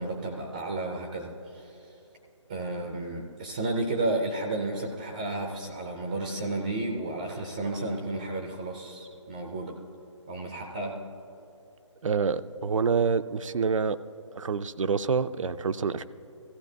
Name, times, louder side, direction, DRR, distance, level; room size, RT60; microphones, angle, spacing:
voice 1, 0.0-1.8 2.5-9.7 10.3-11.0, right 2 dB, 15° right, 2 dB, 0.4 m, -32 dB
voice 2, 12.0-14.0 14.3-16.0, right 5 dB, 85° right, 12 dB, 0.5 m, -27 dB
16.0 x 14.5 x 2.7 m, 2.9 s
hypercardioid pair, 165°, 16 cm